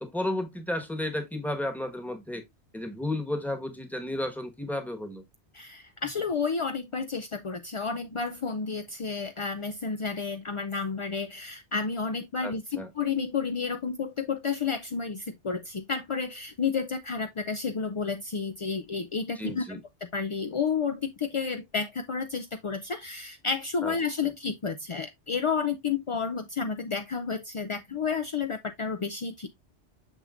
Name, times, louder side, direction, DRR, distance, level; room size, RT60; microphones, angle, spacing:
voice 1, 0.0-2.4 2.7-5.2 12.4-12.9 19.4-19.8 23.8-23.9, left 1 dB, ahead, 1.1 m, -33 dB
voice 2, 5.5-19.8 20.1-29.5, left 5 dB, 50° left, 0.3 m, -31 dB
6.4 x 6.2 x 2.4 m
omnidirectional pair, 1.2 m